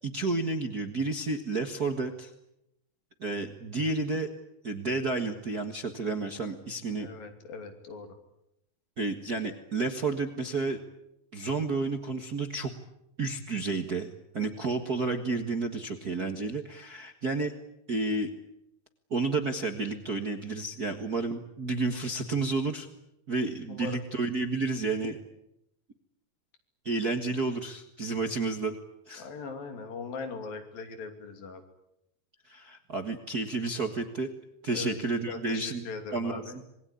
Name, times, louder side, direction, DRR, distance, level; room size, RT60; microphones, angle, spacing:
voice 1, 0.0-2.3 3.2-4.3 4.6-7.1 9.0-10.8 11.3-12.7 13.2-17.5 17.9-18.3 19.1-22.9 23.3-25.2 26.8-28.8 29.1-29.3 32.4-34.3 34.6-35.9 36.1-36.6, right 3 dB, 45° right, 6 dB, 1.3 m, -31 dB
voice 2, 7.0-8.1 23.7-24.0 29.2-31.6 34.7-35.0 35.3-36.6, left 4 dB, 75° left, 6 dB, 4.6 m, -40 dB
26.5 x 21.0 x 10.0 m, 0.84 s
omnidirectional pair, 4.1 m